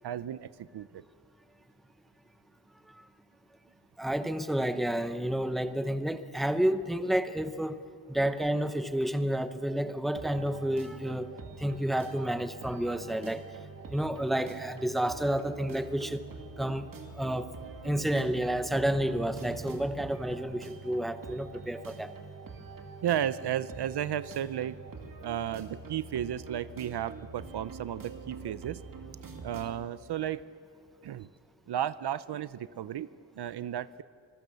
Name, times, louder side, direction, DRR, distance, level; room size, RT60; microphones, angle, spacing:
voice 1, 0.0-1.0 23.0-24.8 25.2-28.8 29.4-30.5 31.0-31.3 31.7-33.1 33.4-34.0, right 10 dB, 65° right, 16 dB, 0.7 m, -33 dB
voice 2, 4.0-7.8 8.1-13.4 13.9-16.3 16.6-16.9 17.2-17.5 17.8-22.1, right 1 dB, ahead, 10 dB, 0.7 m, -30 dB
sound 1, 10.2-29.9, right 4 dB, 50° right, 2.5 m, -45 dB
26.0 x 21.5 x 6.9 m, 2.3 s
wide cardioid pair, 170°, 43 cm